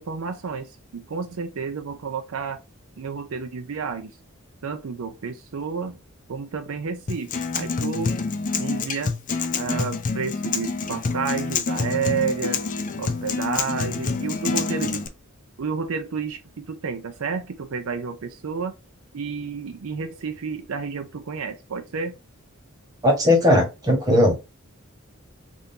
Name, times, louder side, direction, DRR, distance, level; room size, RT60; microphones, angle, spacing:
voice 1, 0.0-2.6 3.0-4.1 4.6-6.0 6.3-8.1 8.6-9.1 9.5-12.7 13.0-15.1 15.6-18.8 19.1-22.2, right 5 dB, 70° right, 0.5 m, -30 dB
Acoustic guitar, 7.1-15.1, left 4 dB, 35° left, 0.4 m, -27 dB
voice 2, 23.0-24.4, left 1 dB, 15° right, 1.3 m, -18 dB
3.6 x 2.6 x 2.7 m
head